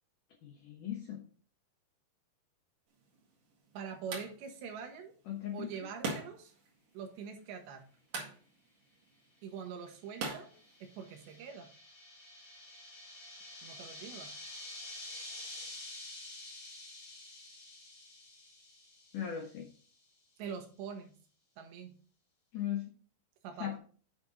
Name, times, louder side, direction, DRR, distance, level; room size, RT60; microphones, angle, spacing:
voice 1, 0.4-1.2 5.3-5.7 19.1-19.7 22.5-22.9 23.6-23.8, left 10 dB, 85° left, 2 dB, 1.8 m, -38 dB
sound 1, 2.9-11.4, right 4 dB, 50° right, 2.9 m, -45 dB
voice 2, 3.7-5.1 5.5-6.5 6.9-7.8 9.4-10.5 10.8-11.7 13.6-14.3 20.4-21.1 21.6-21.9 23.4-23.7, right 6 dB, 75° right, 5 dB, 3.1 m, -44 dB
sound 2, 9.8-19.6, left 2 dB, 35° left, 2.0 m, -49 dB
8.5 x 6.6 x 3.9 m, 0.41 s
omnidirectional pair, 5.3 m